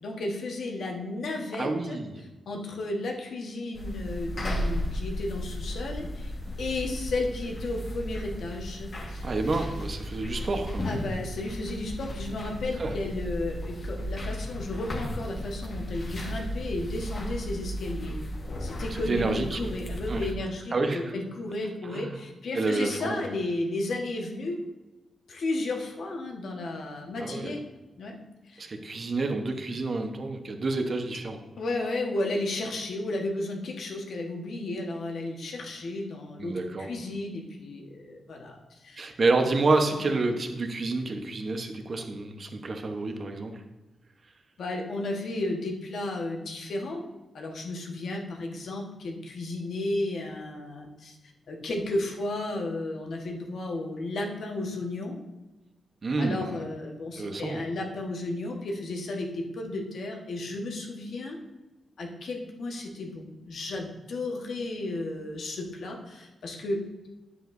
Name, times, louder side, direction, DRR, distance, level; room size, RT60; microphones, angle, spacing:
voice 1, 0.0-2.0 2.5-6.3 6.6-9.3 10.8-18.2 18.6-24.6 25.3-27.6 28.0-28.1 28.5-28.7 31.6-39.2 40.0-40.1 44.6-47.0 47.3-51.2 51.5-55.2 56.2-61.4 62.0-66.8, left 2 dB, 70° left, 1 dB, 1.3 m, -33 dB
voice 2, 1.6-2.1 9.2-10.9 12.8-13.0 19.1-19.6 20.1-20.3 20.7-21.0 21.9-22.1 22.5-23.2 27.2-27.6 28.6-31.4 36.4-36.9 39.0-43.6 56.0-56.6 57.2-57.6, right 3 dB, 40° right, 5 dB, 0.9 m, -28 dB
sound 1, 3.7-20.3, equal, 40° left, 1.4 m, -35 dB
10.0 x 7.8 x 2.6 m, 1.1 s
cardioid pair, 110°, 0 cm